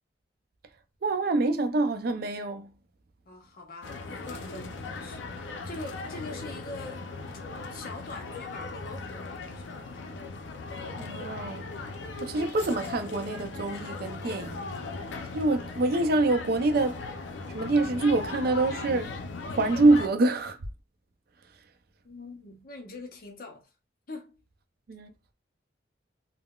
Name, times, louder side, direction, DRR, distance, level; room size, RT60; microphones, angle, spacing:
voice 1, 1.0-2.7 11.0-11.6 12.2-14.7 15.3-17.0 17.5-19.1 19.5-20.6 24.9-25.1, right 2 dB, 55° right, 0.4 m, -25 dB
voice 2, 3.3-4.0 4.2-7.1 7.7-10.0 22.0-23.7 24.1-24.4, left 2 dB, 50° left, 0.7 m, -43 dB
sound 1, 3.8-20.1, left 3 dB, 90° left, 0.5 m, -38 dB
3.7 x 2.0 x 2.3 m
head